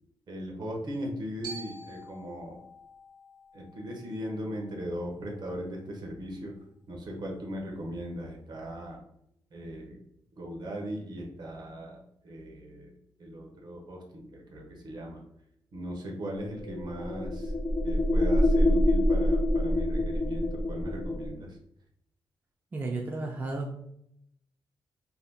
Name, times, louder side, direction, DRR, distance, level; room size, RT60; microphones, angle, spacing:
voice 1, 0.3-2.6 3.5-6.5 6.9-9.0 9.5-10.0 10.4-15.2 15.7-17.5 17.8-21.6, equal, 65° right, 0 dB, 0.9 m, -38 dB
Glockenspiel, 1.4-5.6, right 2 dB, 85° right, 1.3 m, -48 dB
sound 1, 16.4-21.3, left 1 dB, 50° left, 0.4 m, -26 dB
voice 2, 22.7-23.7, right 2 dB, 25° right, 0 dB, 0.4 m, -33 dB
2.8 x 2.3 x 3.4 m, 0.75 s
wide cardioid pair, 150°, 8 cm